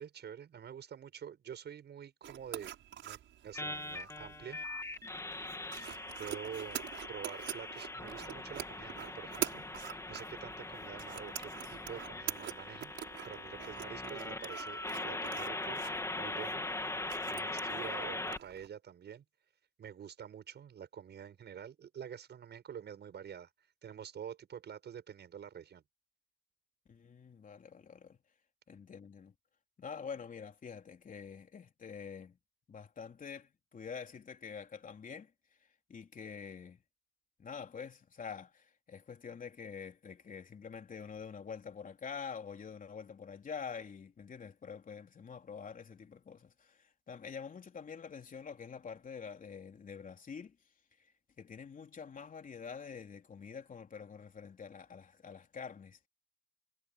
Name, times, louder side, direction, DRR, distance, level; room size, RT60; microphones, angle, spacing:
voice 1, 0.0-2.7 3.0-3.2 3.4-4.6 5.7-16.7 17.3-19.2 19.8-23.5 23.8-25.8, right 8 dB, 60° right, 7.2 m, -47 dB
sound 1, 2.2-18.7, right 11 dB, 75° right, 7.0 m, -46 dB
sound 2, 3.5-18.4, left 2 dB, 15° left, 2.4 m, -41 dB
voice 2, 26.9-28.2 28.7-29.3 29.8-32.4 32.7-35.3 35.9-36.8 37.4-50.6 51.4-56.1, left 6 dB, 40° left, 3.7 m, -46 dB
cardioid pair, 90°, 20 cm